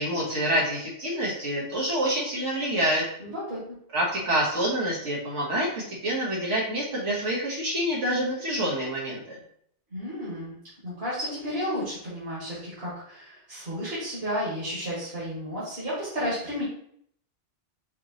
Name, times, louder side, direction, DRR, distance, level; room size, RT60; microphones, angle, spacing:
voice 1, 0.0-3.0 3.9-9.4, right 1 dB, 75° right, -4 dB, 1.6 m, -27 dB
voice 2, 3.2-3.8 9.9-10.5 10.8-16.6, equal, 55° right, -9 dB, 1.8 m, -32 dB
5.9 x 3.0 x 3.0 m, 0.66 s
omnidirectional pair, 1.2 m